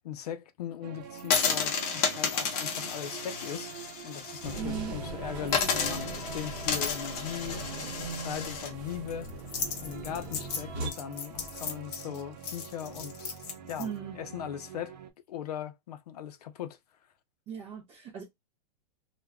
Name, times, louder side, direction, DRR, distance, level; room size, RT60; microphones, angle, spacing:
voice 1, 0.0-13.3 13.7-15.0 15.3-16.8, left 9 dB, 70° left, 0.5 m, -39 dB
sound 1, 0.8-15.1, right 7 dB, 90° right, 0.6 m, -46 dB
sound 2, 1.2-4.6 4.9-5.0 5.5-13.8, left 6 dB, 25° left, 0.5 m, -32 dB
sound 3, 4.4-10.9, right 2 dB, 40° right, 0.9 m, -40 dB
voice 2, 4.6-4.9 13.8-14.2 17.5-18.2, right 7 dB, 20° right, 0.5 m, -37 dB
2.2 x 2.2 x 3.5 m
supercardioid pair, 170°, 21 cm